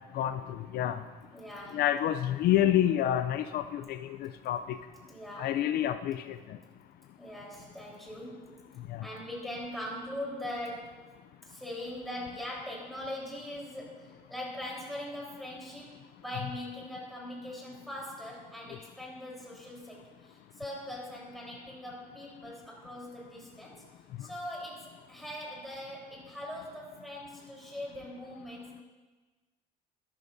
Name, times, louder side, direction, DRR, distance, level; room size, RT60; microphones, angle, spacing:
voice 1, 0.1-1.0 1.7-4.8 5.4-6.4 8.9-9.0, left 11 dB, 70° left, 11 dB, 0.4 m, -28 dB
voice 2, 1.3-1.8 5.1-5.6 7.2-8.5 9.0-11.1 11.4-23.8 24.2-28.8, left 1 dB, ahead, -4 dB, 3.8 m, -41 dB
13.5 x 12.5 x 2.6 m, 1.3 s
cardioid pair, 110°, 17 cm